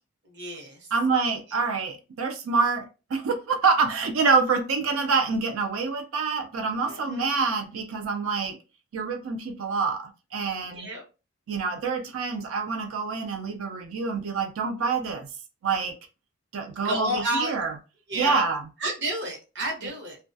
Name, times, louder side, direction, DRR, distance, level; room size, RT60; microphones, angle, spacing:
voice 1, 0.2-0.9 6.9-7.3 10.6-11.0 16.8-17.5 18.1-18.4 18.8-20.2, right 1 dB, 60° right, 0.9 m, -31 dB
voice 2, 0.9-8.6 8.9-10.9 11.5-15.3 15.6-16.0 16.5-17.7 18.2-18.6 19.8-19.9, right 4 dB, 80° right, 0.4 m, -26 dB
2.3 x 2.2 x 2.5 m
head